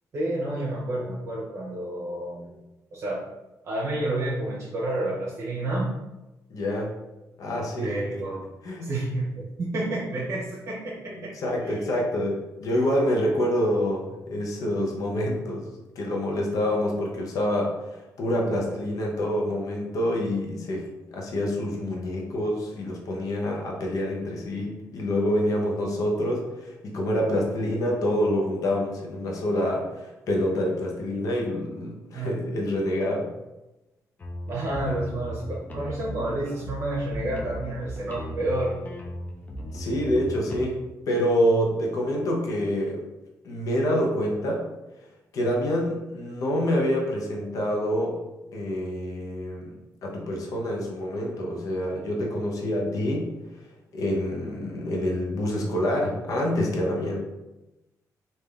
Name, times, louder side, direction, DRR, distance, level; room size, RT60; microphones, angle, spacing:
voice 1, 0.1-2.6 2.9-3.2 3.6-5.9 7.8-8.4 8.8-11.3 11.6-11.8 32.1-32.4 34.5-38.8, right 1 dB, 50° right, -5 dB, 0.9 m, -30 dB
voice 2, 6.5-6.9 7.4-7.9 8.6-8.9 11.4-20.9 21.1-33.3 39.7-43.0 43.4-44.7 45.3-48.2 48.5-49.7 50.0-53.3 53.6-53.7 53.9-57.2, equal, 65° left, 0 dB, 0.8 m, -27 dB
sound 1, 34.2-40.6, equal, 25° left, 0.6 m, -36 dB
3.7 x 2.7 x 3.3 m, 1.0 s
cardioid pair, 130°, 6 cm